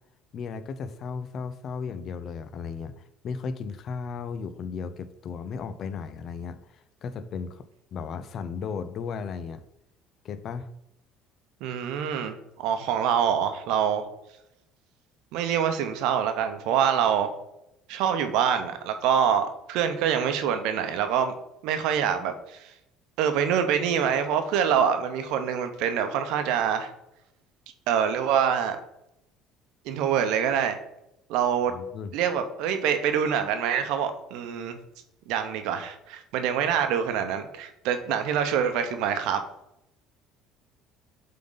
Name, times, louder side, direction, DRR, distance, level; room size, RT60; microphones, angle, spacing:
voice 1, 0.3-9.6 10.2-10.7 31.7-32.1, left 5 dB, 45° left, 12 dB, 0.5 m, -35 dB
voice 2, 11.6-14.0 15.3-17.3 17.9-21.3 21.6-22.7 23.2-26.9 27.9-28.8 29.8-30.8 31.3-31.7 32.1-34.8 35.3-39.4, right 8 dB, 75° right, 8 dB, 0.8 m, -25 dB
7.3 x 3.8 x 3.9 m, 0.83 s
cardioid pair, 130°, 0 cm